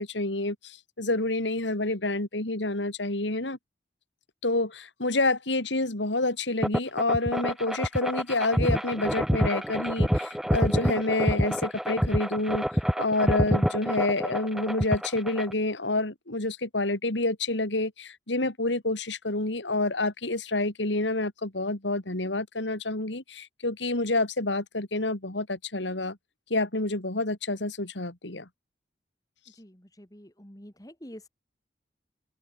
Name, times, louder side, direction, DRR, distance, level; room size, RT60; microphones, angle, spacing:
voice 1, 0.0-3.6 4.4-12.6 13.0-26.2 26.5-28.5, left 2 dB, 80° left, 3.0 m, -28 dB
sound 1, 6.6-15.5, equal, ahead, 0.8 m, -27 dB
voice 2, 29.5-31.3, equal, 20° left, 3.0 m, -47 dB
head